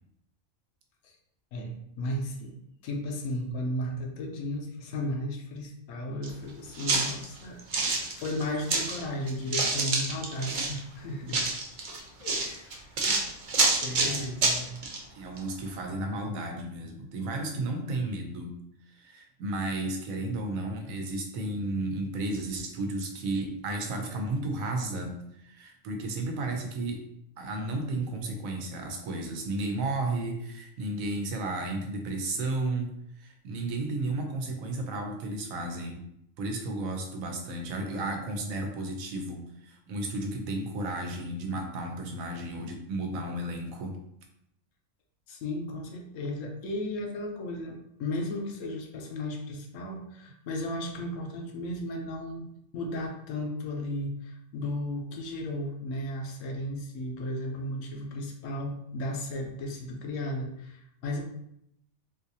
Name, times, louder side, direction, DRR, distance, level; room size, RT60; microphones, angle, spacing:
voice 1, 1.5-2.5 2.8-11.4 12.2-12.9 13.7-14.7 45.3-52.4 52.7-61.2, left 1 dB, 75° left, 2 dB, 1.0 m, -35 dB
sound 1, 6.2-6.3 6.7-9.0 9.3-10.8 11.3-15.0 15.4-15.5, right 3 dB, 55° right, 0.6 m, -27 dB
voice 2, 13.9-14.2 15.1-18.5 18.9-27.0 27.4-36.0 36.4-44.0, right 2 dB, 90° right, 3 dB, 1.1 m, -33 dB
3.9 x 2.5 x 2.7 m, 0.77 s
omnidirectional pair, 1.4 m